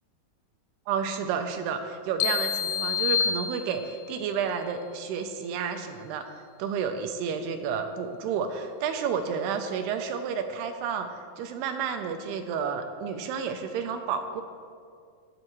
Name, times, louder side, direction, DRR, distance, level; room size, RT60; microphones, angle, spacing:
voice 1, 0.9-6.2 6.6-14.4, right 6 dB, 80° right, 6 dB, 2.6 m, -31 dB
sound 1, 2.2-4.1, left 7 dB, 90° left, 2.2 m, -28 dB
21.5 x 7.7 x 3.1 m, 2.2 s
omnidirectional pair, 5.0 m